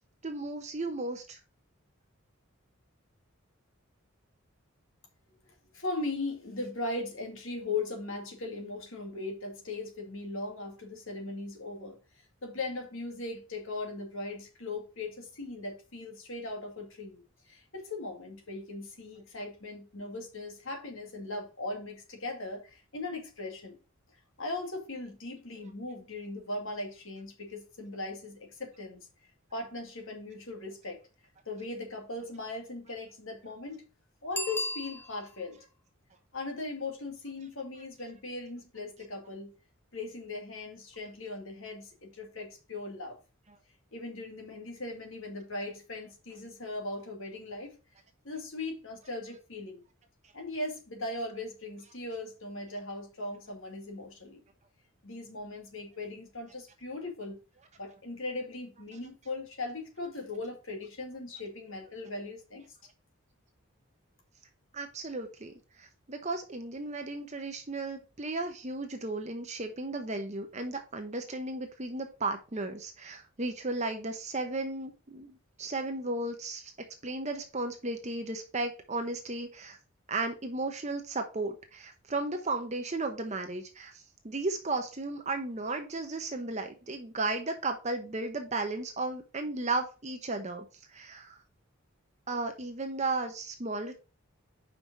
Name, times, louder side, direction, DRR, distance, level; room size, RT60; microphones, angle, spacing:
voice 1, 0.2-1.4 64.7-76.7 77.0-79.8 80.1-91.4 92.3-93.9, right 2 dB, 30° right, 0.9 m, -35 dB
voice 2, 5.7-12.0 12.4-23.8 24.4-29.0 29.5-31.0 31.5-33.9 34.2-35.6 36.3-39.5 39.9-43.2 43.9-47.7 48.2-49.8 50.3-54.4 55.0-57.4 57.8-62.7, left 2 dB, 70° left, 2.1 m, -39 dB
Bicycle bell, 34.3-35.5 40.9-41.0, left 1 dB, 10° left, 0.5 m, -35 dB
5.6 x 4.9 x 6.0 m
head